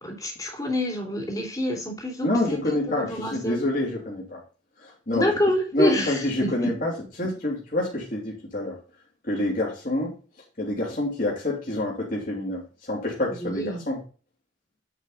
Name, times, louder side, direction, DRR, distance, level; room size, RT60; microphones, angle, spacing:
voice 1, 0.0-3.6 5.1-6.8 13.4-13.8, left 1 dB, 20° left, 1 dB, 3.0 m, -27 dB
voice 2, 2.2-4.4 4.8-5.3 5.7-8.8 9.2-10.1 10.6-14.0, left 1 dB, 45° left, -4 dB, 3.2 m, -27 dB
9.4 x 5.8 x 4.0 m, 0.36 s
head